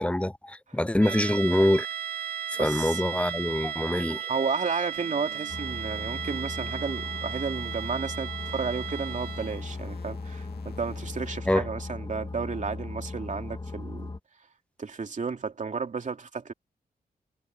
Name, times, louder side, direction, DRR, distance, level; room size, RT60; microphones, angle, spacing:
voice 1, 0.0-1.9 2.6-4.3 11.5-11.7, left 1 dB, 5° left, 0.6 m, -25 dB
sound 1, 1.0-9.7, right 9 dB, 75° right, 3.0 m, -35 dB
voice 2, 2.6-3.0 4.3-14.1 14.8-16.5, right 5 dB, 50° right, 2.7 m, -32 dB
sound 2, 5.0-8.0 8.4-11.4, left 7 dB, 75° left, 2.8 m, -51 dB
sound 3, 5.5-14.2, left 3 dB, 30° left, 2.0 m, -37 dB
cardioid pair, 85°, 16 cm